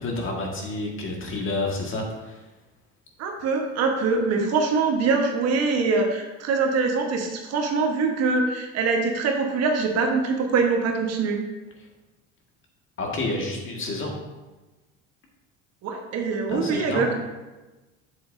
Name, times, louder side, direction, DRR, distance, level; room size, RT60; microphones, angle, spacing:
voice 1, 0.0-2.4 13.0-14.1 16.5-17.1, left 2 dB, 40° left, 0 dB, 1.9 m, -29 dB
voice 2, 3.2-11.4 15.8-17.1, right 4 dB, 55° right, 2 dB, 1.3 m, -23 dB
7.8 x 7.0 x 2.7 m, 1.1 s
supercardioid pair, 90°, 30 cm